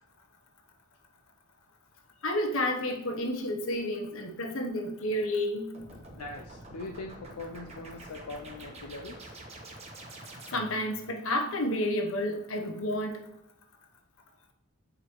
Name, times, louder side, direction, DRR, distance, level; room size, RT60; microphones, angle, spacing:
voice 1, 2.2-5.7 10.5-13.2, left 1 dB, 70° left, 4 dB, 0.8 m, -30 dB
sound 1, 5.7-10.9, right 1 dB, 30° right, 1.0 m, -47 dB
voice 2, 6.2-9.3, left 2 dB, 85° left, 3 dB, 0.5 m, -41 dB
7.4 x 4.8 x 3.0 m, 0.82 s
head